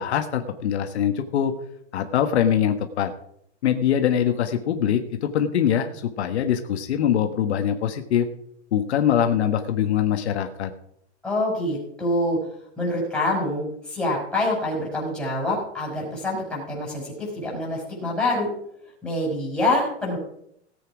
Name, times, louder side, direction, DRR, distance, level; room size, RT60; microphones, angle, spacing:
voice 1, 0.0-1.5 1.9-3.1 3.6-8.3 8.7-10.7, left 9 dB, 70° left, 6 dB, 1.4 m, -23 dB
voice 2, 11.2-12.4 12.8-18.5 19.0-20.2, left 1 dB, 5° left, -4 dB, 5.8 m, -26 dB
18.0 x 8.3 x 4.9 m, 0.71 s
supercardioid pair, 160°, 34 cm